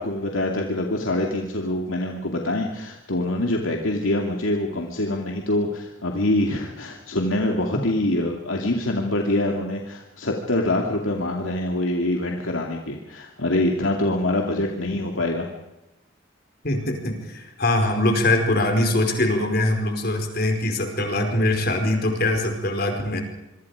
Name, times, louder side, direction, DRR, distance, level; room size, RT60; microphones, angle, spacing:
voice 1, 0.0-15.5, left 1 dB, 85° left, 1 dB, 2.7 m, -25 dB
voice 2, 16.6-23.2, left 1 dB, 50° left, 4 dB, 4.9 m, -22 dB
26.0 x 24.5 x 5.0 m, 0.97 s
head